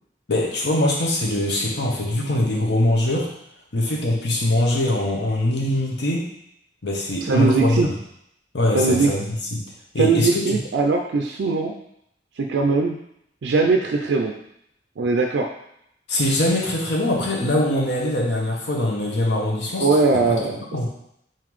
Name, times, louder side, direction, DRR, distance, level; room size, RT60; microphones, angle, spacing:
voice 1, 0.3-3.3 3.7-6.3 6.8-7.9 8.5-9.6 9.9-10.6 16.1-20.4 20.7-20.9, left 1 dB, 70° left, -1 dB, 1.0 m, -22 dB
voice 2, 7.2-7.9 8.7-9.1 10.0-11.7 12.4-12.9 13.4-14.3 15.0-15.5 19.8-20.6, right 4 dB, 70° right, 2 dB, 0.4 m, -20 dB
4.3 x 3.8 x 3.1 m, 0.76 s
head